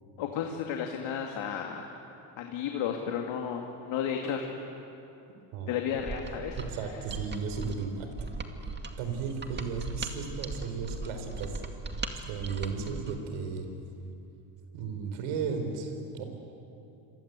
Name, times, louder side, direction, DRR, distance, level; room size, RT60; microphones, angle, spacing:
voice 1, 0.2-1.9 2.4-4.5 5.7-6.6, left 8 dB, 65° left, 2 dB, 2.4 m, -33 dB
Mechanisms, 6.0-13.2, right 3 dB, 20° right, 2.3 m, -39 dB
voice 2, 6.6-8.1 9.0-11.6 12.3-13.7 14.7-16.2, right 5 dB, 85° right, 6 dB, 4.5 m, -35 dB
27.0 x 23.5 x 8.3 m, 2.8 s
cardioid pair, 100°, 50 cm